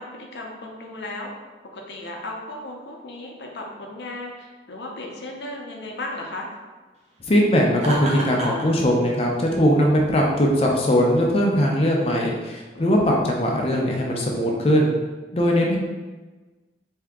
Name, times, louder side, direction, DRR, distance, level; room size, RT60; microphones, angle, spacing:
voice 1, 0.0-1.3 1.7-6.5 12.7-12.8, left 2 dB, 75° left, 0 dB, 0.7 m, -35 dB
voice 2, 7.3-14.9 15.3-15.8, equal, 35° left, -1 dB, 0.5 m, -20 dB
Laughter, 7.8-8.7, right 1 dB, 40° right, 0.6 m, -28 dB
3.4 x 2.8 x 3.5 m, 1.3 s
head